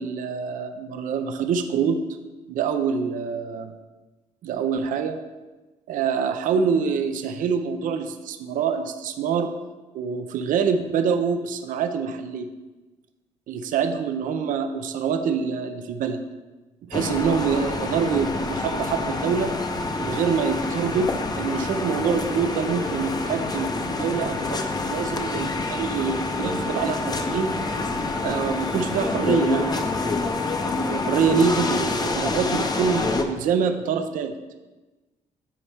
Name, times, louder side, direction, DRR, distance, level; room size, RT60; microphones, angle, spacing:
voice 1, 0.0-2.0 2.5-3.7 4.4-5.2 5.9-9.5 9.9-12.5 13.5-16.2 16.9-19.5 20.0-27.6 28.2-29.8 30.7-34.3, right 6 dB, 75° right, 7 dB, 0.5 m, -25 dB
sound 1, 16.9-33.2, left 3 dB, 30° left, 0.7 m, -27 dB
9.9 x 4.3 x 3.4 m, 1.2 s
cardioid pair, 90°, 14 cm